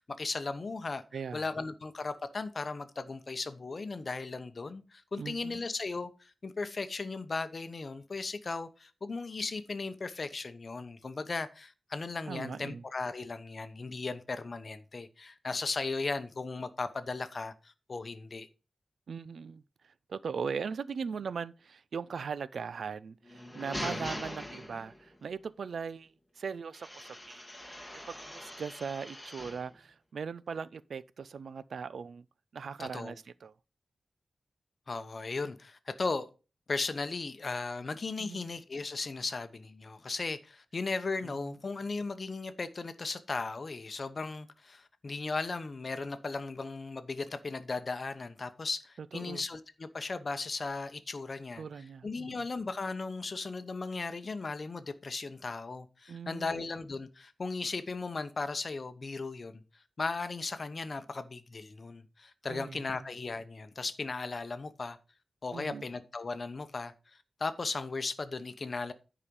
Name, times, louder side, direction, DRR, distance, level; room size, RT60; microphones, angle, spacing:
voice 1, 0.0-1.0 1.3-18.5 23.8-24.1 32.8-33.2 34.9-36.3 36.7-51.6 52.0-59.6 60.0-65.0 65.4-66.9 67.4-68.9, left 3 dB, 45° left, 0.9 m, -37 dB
voice 2, 1.1-1.4 5.2-5.7 12.3-12.8 19.1-27.4 28.1-32.3 32.5-33.5 38.2-38.5 41.2-41.5 49.1-49.4 51.6-52.4 56.1-56.7 62.5-63.1 65.5-65.8, right 6 dB, 85° right, 0.4 m, -39 dB
sound 1, 23.2-25.2 26.7-29.7, left 1 dB, 5° left, 1.9 m, -42 dB
9.8 x 5.0 x 5.3 m
wide cardioid pair, 115°, 0 cm